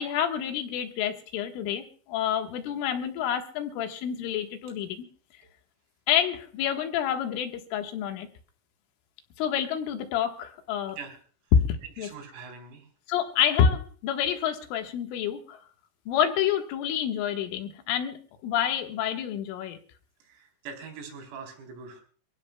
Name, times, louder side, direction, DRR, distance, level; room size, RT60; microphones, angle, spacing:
voice 1, 0.0-5.1 6.1-8.3 9.4-11.0 11.5-11.6 12.0-12.1 13.1-15.6 16.1-19.8, left 8 dB, 75° left, 5 dB, 3.9 m, -28 dB
voice 2, 12.0-12.9 20.2-22.0, right 5 dB, 80° right, 3 dB, 6.5 m, -43 dB
29.0 x 16.5 x 2.3 m, 0.44 s
omnidirectional pair, 6.0 m